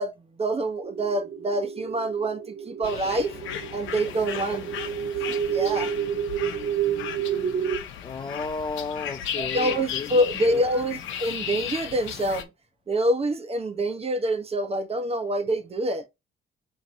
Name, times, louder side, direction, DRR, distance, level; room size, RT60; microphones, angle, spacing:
voice 1, 0.0-3.3 3.7-4.7 5.3-5.9 9.4-12.5 12.9-16.0, right 1 dB, 30° right, 1.0 m, -26 dB
sound 1, 0.8-7.8, right 8 dB, 50° right, 1.3 m, -30 dB
sound 2, 2.8-12.4, left 9 dB, 85° left, 0.9 m, -35 dB
voice 2, 8.0-10.2 10.5-10.6, left 4 dB, 25° left, 0.3 m, -33 dB
4.6 x 2.9 x 3.8 m
cardioid pair, 90°, 20 cm